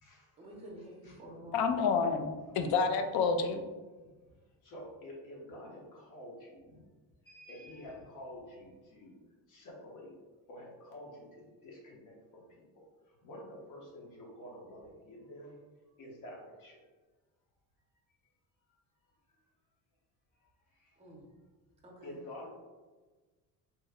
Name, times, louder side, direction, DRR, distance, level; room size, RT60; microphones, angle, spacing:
voice 1, 0.4-1.8 21.0-21.3 21.8-22.2, right 1 dB, 15° right, -1 dB, 0.7 m, -49 dB
voice 2, 1.5-3.6, left 5 dB, 70° left, 7 dB, 0.5 m, -29 dB
voice 3, 4.6-6.6 7.3-9.2 9.5-10.1 10.5-12.4 13.2-15.5 16.0-16.8 22.0-22.5, left 1 dB, 55° left, -2 dB, 1.0 m, -48 dB
3.0 x 2.2 x 3.5 m, 1.3 s
cardioid pair, 155°, 39 cm